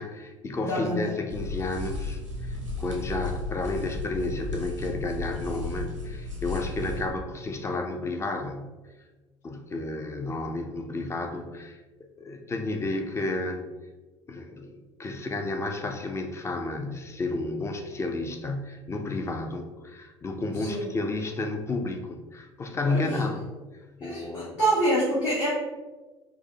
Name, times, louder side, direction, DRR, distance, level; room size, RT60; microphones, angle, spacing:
voice 1, 0.0-8.8 9.4-11.8 12.2-13.6 14.3-23.6 24.0-24.6, left 2 dB, 15° left, 5 dB, 0.4 m, -32 dB
voice 2, 0.6-1.1 20.5-20.9 22.8-23.2 24.0-25.5, right 1 dB, 75° left, -11 dB, 1.3 m, -27 dB
sound 1, 1.3-7.0, left 2 dB, 90° right, 0.7 m, -34 dB
4.6 x 2.1 x 2.8 m, 1.2 s
figure-of-eight pair, 65°, 15 cm